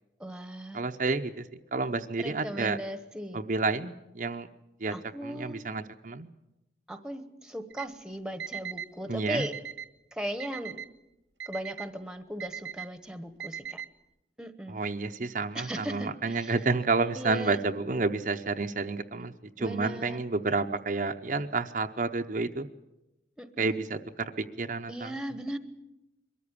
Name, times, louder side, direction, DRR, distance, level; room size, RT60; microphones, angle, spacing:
voice 1, 0.2-0.8 2.2-3.4 4.9-5.6 6.9-9.5 10.1-10.8 11.5-13.8 14.4-14.8 15.5-16.5 17.1-17.6 19.6-20.3 23.4-23.8 24.9-25.6, equal, 5° right, 11 dB, 1.1 m, -37 dB
voice 2, 0.7-1.5 1.7-2.8 3.3-4.5 4.8-4.9 5.2-6.3 9.1-9.4 14.7-22.7 23.6-25.1, right 3 dB, 45° right, 6 dB, 0.7 m, -30 dB
Alarm, 7.7-7.9 8.4-8.9 9.4-9.9 10.4-10.9 11.4-11.9 12.4-12.9 13.4-13.9, right 8 dB, 90° right, 1.4 m, -39 dB
23.0 x 14.0 x 9.9 m, 0.95 s
head